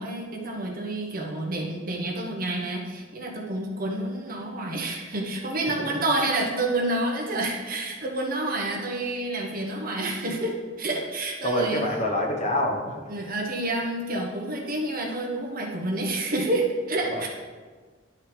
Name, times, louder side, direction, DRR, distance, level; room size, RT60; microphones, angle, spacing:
voice 1, 0.0-11.8 13.1-17.3, right 2 dB, 50° right, 0 dB, 1.2 m, -29 dB
voice 2, 11.4-13.0 17.0-17.2, left 1 dB, 35° left, 0 dB, 1.1 m, -27 dB
11.0 x 5.6 x 3.4 m, 1.5 s
head